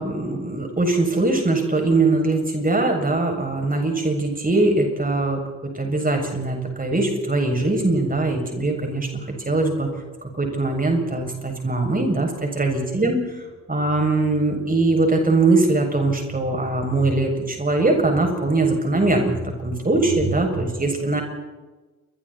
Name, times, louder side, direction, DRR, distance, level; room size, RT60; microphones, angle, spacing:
voice 1, 0.0-9.9 10.4-13.2 13.7-21.2, right 2 dB, 20° right, 3 dB, 7.4 m, -21 dB
28.5 x 24.5 x 4.4 m, 1.2 s
figure-of-eight pair, 45°, 44 cm